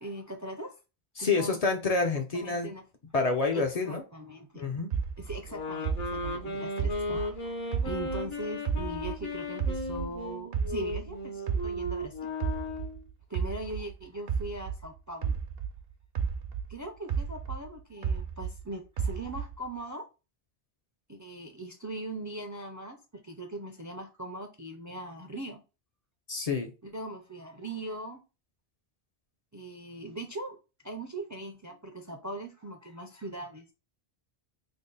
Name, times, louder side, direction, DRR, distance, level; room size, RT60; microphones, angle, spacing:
voice 1, 0.0-0.8 1.2-1.6 2.3-2.8 3.5-4.6 5.2-12.3 13.3-15.4 16.7-20.1 21.1-25.6 26.8-28.2 29.5-30.6 30.8-33.6, right 1 dB, 30° right, 0.3 m, -40 dB
voice 2, 1.2-2.7 3.1-4.0 4.5-4.9 26.3-26.7, left 4 dB, 45° left, 0.5 m, -28 dB
sound 1, 4.9-8.3 8.7-11.1 11.5-15.8 16.2-18.6 19.0-19.7, right 6 dB, 65° right, 0.8 m, -32 dB
sound 2, 5.5-13.0, left 2 dB, 70° left, 1.2 m, -36 dB
3.5 x 2.1 x 3.9 m
omnidirectional pair, 1.1 m